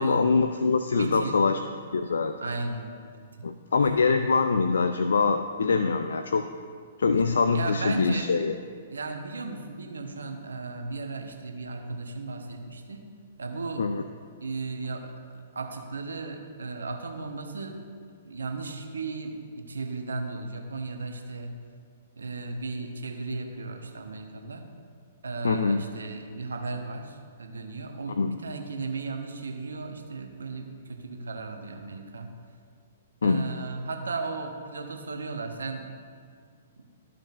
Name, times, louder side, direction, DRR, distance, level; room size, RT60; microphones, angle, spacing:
voice 1, 0.0-1.6 1.9-2.4 3.4-6.5 7.0-8.5 13.8-14.0 25.4-25.8 28.2-28.4 33.2-33.4, left 4 dB, 70° left, 8 dB, 0.3 m, -24 dB
voice 2, 1.0-1.4 2.4-2.9 7.5-8.3 8.9-13.0 13.4-13.9 14.4-17.8 18.2-21.5 22.2-24.6 25.2-32.3 33.2-35.9 36.8-36.9, right 3 dB, 75° right, 4 dB, 0.9 m, -35 dB
13.5 x 5.1 x 2.5 m, 2.1 s
figure-of-eight pair, 115°, 0 cm